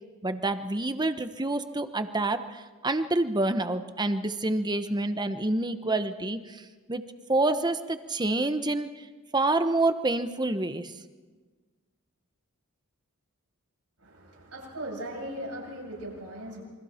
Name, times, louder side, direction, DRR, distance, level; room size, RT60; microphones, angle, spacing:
voice 1, 0.2-6.6 6.9-7.0 7.3-8.9 9.3-10.9, right 2 dB, 20° right, 9 dB, 1.0 m, -27 dB
voice 2, 14.0-16.6, right 1 dB, 80° right, -2 dB, 7.8 m, -38 dB
28.0 x 24.0 x 4.4 m, 1.4 s
head